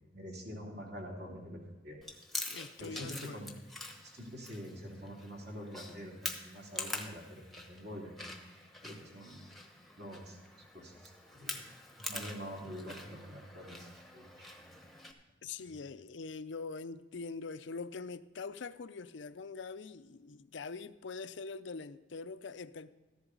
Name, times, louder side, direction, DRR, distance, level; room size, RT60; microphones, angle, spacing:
voice 1, 0.1-2.0 2.8-3.5 4.0-9.5 10.0-10.4 10.7-11.7 12.0-14.7 15.6-15.7, equal, 55° right, 3.0 m, -46 dB
Chewing mastication, 2.0-15.1, left 2 dB, ahead, 1.0 m, -45 dB
voice 2, 2.5-3.6 15.4-22.9, left 4 dB, 70° left, 0.5 m, -43 dB
14.0 x 11.0 x 3.9 m
head